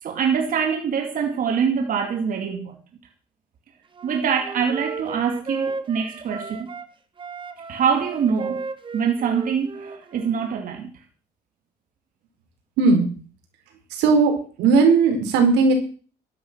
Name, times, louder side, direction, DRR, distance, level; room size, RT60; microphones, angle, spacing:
voice 1, 0.0-2.8 4.0-6.7 7.7-8.6 8.9-10.9, right 7 dB, 55° right, 2.6 m, -24 dB
Wind instrument woodwind instrument, 3.9-6.9 7.2-10.5, right 4 dB, 30° right, 1.9 m, -34 dB
voice 2, 12.8-13.1 13.9-15.7, right 4 dB, 90° right, 5.0 m, -17 dB
13.0 x 11.5 x 6.3 m
cardioid pair, 110°, 17 cm